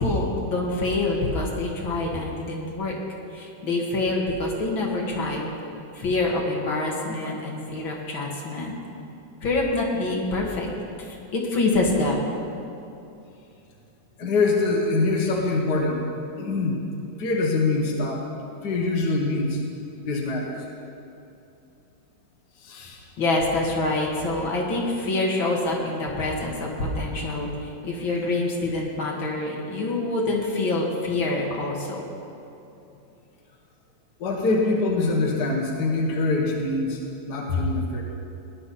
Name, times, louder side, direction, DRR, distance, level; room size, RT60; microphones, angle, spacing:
voice 1, 0.0-2.9 3.3-5.5 5.9-8.7 9.4-10.7 11.3-12.2 23.2-32.0 37.5-37.7, left 2 dB, 85° left, -2 dB, 2.6 m, -26 dB
voice 2, 14.2-16.0 16.4-16.8 17.2-18.3 18.6-19.6 20.0-20.6 22.6-23.0 34.2-37.0 37.3-38.0, left 3 dB, 60° left, -1 dB, 2.0 m, -24 dB
18.0 x 11.0 x 4.2 m, 2.7 s
omnidirectional pair, 2.1 m